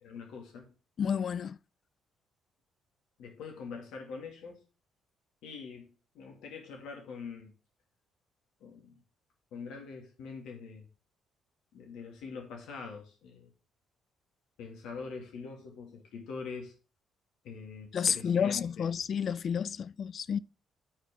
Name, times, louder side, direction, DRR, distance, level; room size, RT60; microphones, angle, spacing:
voice 1, 0.0-0.7 3.2-4.6 5.4-7.5 8.6-9.0 9.5-10.9 11.7-13.5 14.6-16.7 17.4-18.9, left 5 dB, 70° left, 2.2 m, -44 dB
voice 2, 1.0-1.6 17.9-20.4, left 7 dB, 55° left, 0.4 m, -30 dB
11.0 x 4.5 x 3.5 m
hypercardioid pair, 50°, 0 cm